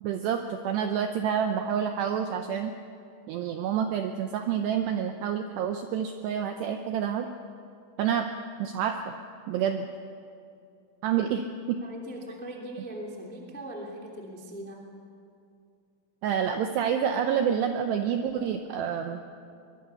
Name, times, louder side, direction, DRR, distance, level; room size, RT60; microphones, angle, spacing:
voice 1, 0.0-2.7 3.3-7.3 8.0-8.3 8.6-9.1 9.5-9.9 11.0-11.8 16.2-19.2, right 8 dB, 80° right, 6 dB, 2.4 m, -28 dB
voice 2, 11.8-14.9, right 1 dB, 10° left, 0 dB, 0.4 m, -40 dB
23.5 x 20.5 x 7.0 m, 2.4 s
omnidirectional pair, 5.9 m